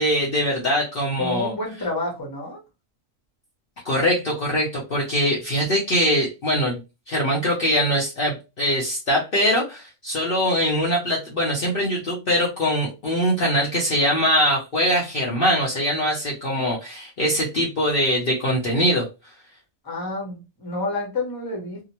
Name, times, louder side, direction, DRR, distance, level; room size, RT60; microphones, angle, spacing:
voice 1, 0.0-1.5 3.8-6.8 7.1-19.1, equal, 50° left, -4 dB, 0.8 m, -22 dB
voice 2, 1.2-2.6 19.8-21.8, left 2 dB, 20° left, -1 dB, 0.8 m, -29 dB
2.8 x 2.1 x 2.9 m, 0.28 s
omnidirectional pair, 1.4 m